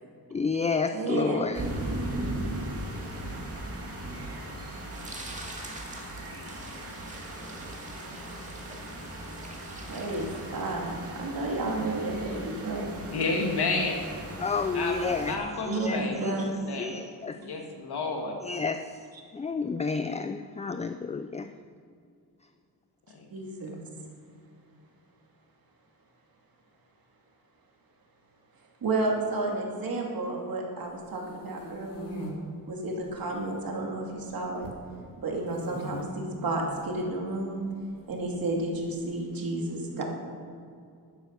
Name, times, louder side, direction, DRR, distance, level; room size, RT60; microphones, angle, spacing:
voice 1, 0.3-1.7 14.4-16.5 16.8-17.4 18.4-21.5, left 4 dB, 20° left, 9 dB, 0.3 m, -31 dB
voice 2, 0.9-1.4 9.9-13.0 15.7-16.4 23.3-23.8 28.8-32.2 32.7-34.7 35.2-37.6 38.1-40.0, right 2 dB, 65° right, 0 dB, 2.6 m, -31 dB
sound 1, 1.5-15.4, right 1 dB, 35° right, 2.1 m, -38 dB
sound 2, 4.9-11.0, right 1 dB, 20° right, 2.0 m, -46 dB
voice 3, 13.1-14.0 14.7-16.9 17.4-18.4 23.1-23.3, left 3 dB, 85° left, 2 dB, 2.3 m, -31 dB
sound 3, 30.9-32.3 33.0-33.6 33.9-34.8 35.4-36.0 36.6-36.8 38.0-38.9, left 1 dB, 60° left, 2.6 m, -43 dB
12.0 x 9.7 x 6.6 m, 2.4 s
wide cardioid pair, 140°, 38 cm